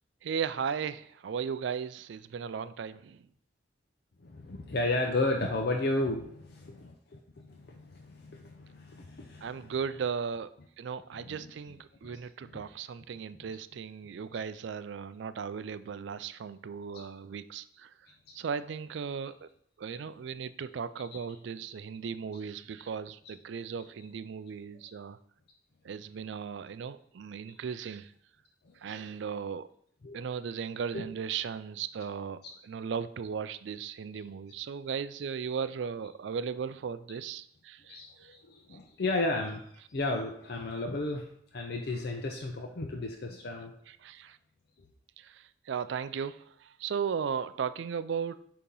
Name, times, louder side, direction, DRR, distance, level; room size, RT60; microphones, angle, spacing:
voice 1, 0.2-3.3 9.4-10.5 10.8-17.9 18.3-19.5 19.8-25.2 25.8-28.1 28.8-29.7 30.1-38.3 43.9-44.4 45.2-48.4, right 6 dB, 70° right, 14 dB, 0.4 m, -36 dB
voice 2, 4.2-10.1 10.6-10.7 11.1-12.7 13.5-13.6 14.3-14.4 16.9-17.0 18.3-18.4 19.9-20.0 21.1-21.2 23.8-23.9 28.7-29.2 30.0-30.2 30.9-31.0 32.4-32.5 37.9-39.6 39.9-43.7, left 2 dB, 55° left, 2 dB, 0.6 m, -34 dB
8.5 x 2.9 x 5.3 m, 0.67 s
head